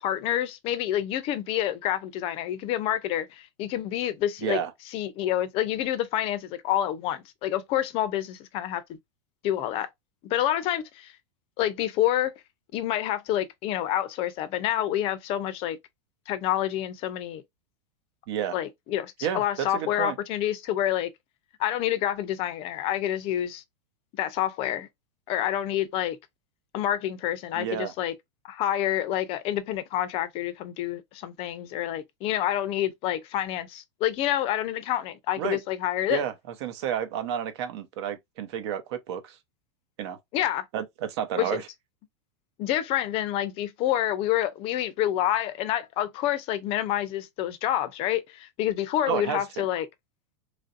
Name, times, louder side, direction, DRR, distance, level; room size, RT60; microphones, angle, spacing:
voice 1, 0.0-4.6 4.9-8.8 9.4-9.9 10.2-11.1 11.6-12.3 12.7-15.8 16.3-17.4 18.5-21.1 21.6-23.6 24.2-24.9 25.3-26.2 26.7-28.1 28.4-36.2 40.3-40.7 41.4-41.6 42.6-49.9, left 12 dB, 40° left, 0.5 m, -28 dB
voice 2, 19.2-20.2 27.5-27.9 35.4-35.6 36.1-36.3 36.6-39.4 40.0-40.2 40.7-41.7 49.1-49.7, right 9 dB, 60° right, 0.8 m, -31 dB
3.1 x 2.6 x 2.5 m
supercardioid pair, 130°, 16 cm